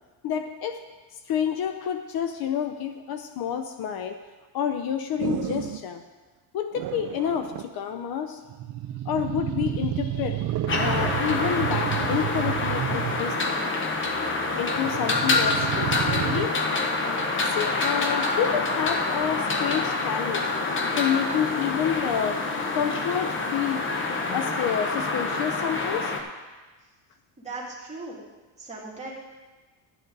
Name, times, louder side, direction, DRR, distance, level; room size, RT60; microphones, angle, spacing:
voice 1, 0.2-0.8 1.3-4.2 4.5-6.0 6.5-8.4 9.0-13.6 14.6-16.6 17.4-20.5 21.0-22.4 22.7-23.9 24.3-26.1, left 8 dB, 60° left, 8 dB, 0.7 m, -29 dB
sound 1, 5.2-5.9 6.8-7.7 8.5-13.4 14.7-16.5, right 12 dB, 45° right, 0.5 m, -30 dB
sound 2, 10.7-26.2, left 3 dB, 30° left, 1.0 m, -27 dB
voice 2, 27.4-28.2 28.6-29.1, right 3 dB, 15° right, -5 dB, 2.6 m, -38 dB
12.0 x 9.4 x 4.0 m, 1.3 s
cardioid pair, 155°, 42 cm